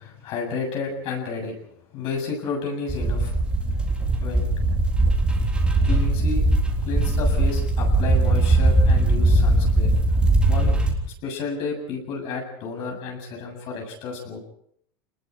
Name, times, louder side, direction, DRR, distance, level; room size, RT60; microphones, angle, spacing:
voice 1, 0.0-1.5 1.9-3.4 4.2-4.5 5.8-6.4 6.8-9.9 10.5-10.8 11.2-14.4, left 4 dB, 50° left, 1 dB, 7.7 m, -31 dB
sound 1, 2.9-10.9, right 2 dB, 10° right, 3.7 m, -20 dB
28.0 x 20.5 x 5.0 m, 0.69 s
supercardioid pair, 135°, 12 cm